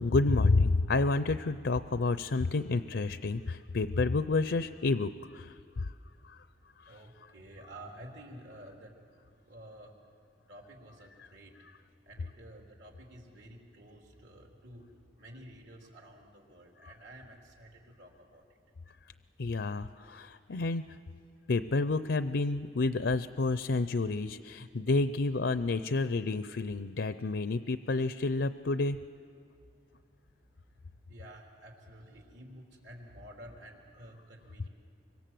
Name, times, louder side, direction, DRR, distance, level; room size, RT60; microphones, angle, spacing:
voice 1, 0.0-5.9 6.3-6.5 6.9-7.0 19.4-20.8 21.5-29.0, left 3 dB, 75° left, 12 dB, 0.6 m, -29 dB
voice 2, 6.9-9.0 9.4-10.0 10.5-11.6 12.1-14.9 15.2-18.4 31.1-34.7, right 1 dB, 75° right, 1 dB, 3.7 m, -51 dB
25.5 x 24.5 x 7.7 m, 2.3 s
head